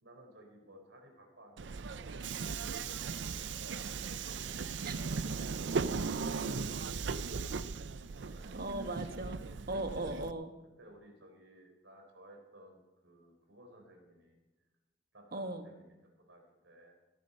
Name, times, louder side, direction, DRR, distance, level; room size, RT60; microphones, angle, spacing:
voice 1, 0.0-4.4 5.0-7.5 8.0-9.0 10.8-14.4 15.1-17.0, right 1 dB, 90° right, 2 dB, 4.1 m, -57 dB
Subway metro underground, 1.6-10.3, right 5 dB, 70° right, 0.5 m, -37 dB
voice 2, 8.5-9.4 9.7-10.5 15.3-15.7, right 2 dB, 55° right, 7 dB, 1.3 m, -38 dB
19.5 x 10.0 x 5.3 m, 1.1 s
head